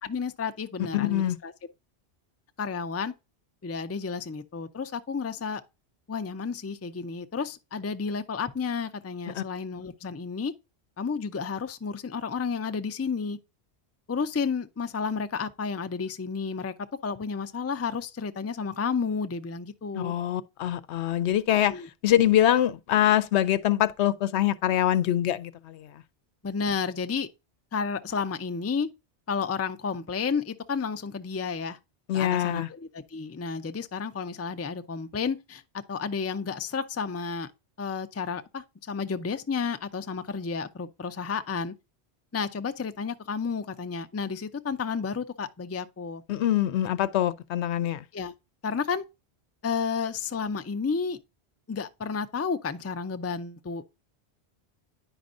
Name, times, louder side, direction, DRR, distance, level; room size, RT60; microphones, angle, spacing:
voice 1, 0.0-1.5 2.6-3.1 3.6-5.6 6.1-10.5 11.0-13.4 14.1-16.7 17.0-20.1 21.7-21.9 26.4-27.3 27.7-28.9 29.3-31.8 32.1-35.6 35.9-37.5 37.8-41.7 42.3-46.2 48.1-48.3 48.6-49.0 49.6-51.2 51.7-54.0, left 5 dB, 25° left, 0.3 m, -31 dB
voice 2, 0.9-1.4 9.3-9.4 19.9-25.9 32.1-32.7 46.3-48.0, left 12 dB, 80° left, 0.9 m, -24 dB
9.8 x 5.3 x 2.4 m
omnidirectional pair, 1.1 m